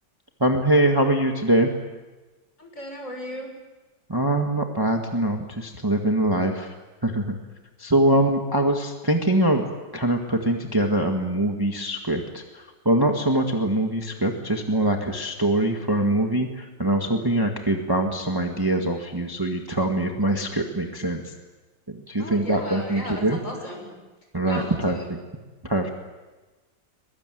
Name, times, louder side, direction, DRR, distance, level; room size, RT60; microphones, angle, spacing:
voice 1, 0.4-1.7 4.1-6.7 7.0-7.4 7.8-9.7 9.9-21.3 21.9-23.4 24.3-25.2 25.6-25.9, right 1 dB, 10° right, 3 dB, 1.7 m, -23 dB
voice 2, 2.6-3.5 17.2-17.4 22.2-23.8 24.4-25.0, left 1 dB, 40° left, 2 dB, 6.6 m, -36 dB
23.0 x 22.5 x 9.3 m, 1.2 s
omnidirectional pair, 2.1 m